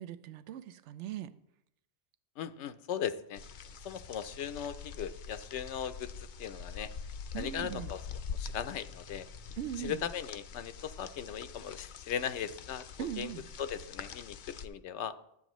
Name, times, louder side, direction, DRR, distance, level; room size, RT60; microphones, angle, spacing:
voice 1, 0.0-1.3 7.3-7.9 9.6-10.0 13.0-13.5, right 11 dB, 85° right, 14 dB, 0.9 m, -40 dB
voice 2, 2.4-3.4 3.8-6.9 7.3-8.0 8.3-9.3 9.8-13.3 13.6-15.1, left 8 dB, 85° left, 12 dB, 0.9 m, -38 dB
sound 1, 3.4-14.7, left 6 dB, 60° left, 0.6 m, -45 dB
11.5 x 8.5 x 3.0 m, 0.78 s
omnidirectional pair, 1.2 m